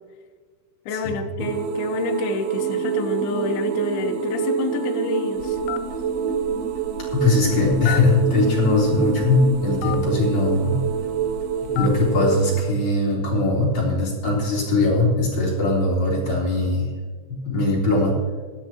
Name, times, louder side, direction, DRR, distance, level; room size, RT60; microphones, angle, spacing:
voice 1, 0.9-5.6, left 4 dB, 70° left, 3 dB, 2.7 m, -28 dB
sound 1, 1.4-12.6, right 8 dB, 80° right, 2.4 m, -27 dB
sound 2, 2.6-9.8, left 1 dB, 5° left, 0.5 m, -36 dB
Telephone, 5.4-12.2, left 10 dB, 90° left, 3.1 m, -36 dB
voice 2, 7.1-10.8 11.7-16.9 17.3-18.2, left 2 dB, 40° left, -5 dB, 4.4 m, -20 dB
17.0 x 13.0 x 3.0 m, 1.5 s
omnidirectional pair, 5.4 m